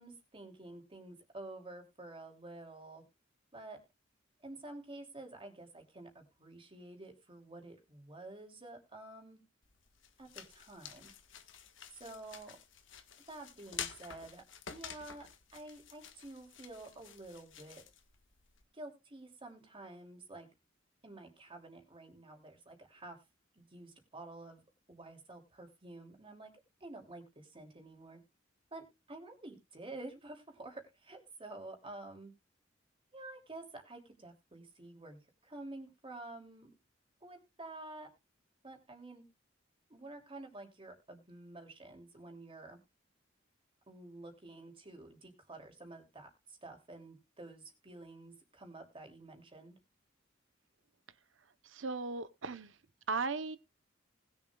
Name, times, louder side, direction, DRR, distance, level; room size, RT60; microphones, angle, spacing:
voice 1, 0.0-3.0 3.5-3.8 4.4-9.4 10.2-11.1 11.9-12.6 13.3-17.8 18.7-20.5 21.0-23.2 23.5-24.6 24.9-26.5 26.8-28.2 28.7-32.3 33.1-36.7 37.2-38.1 38.6-39.2 39.9-42.8 43.9-49.8, right 2 dB, 30° right, 2.9 m, -50 dB
sound 1, 9.6-18.6, left 8 dB, 75° left, 1.5 m, -49 dB
voice 2, 51.6-52.8 53.1-53.6, right 4 dB, 75° right, 0.9 m, -37 dB
20.0 x 7.2 x 2.4 m
head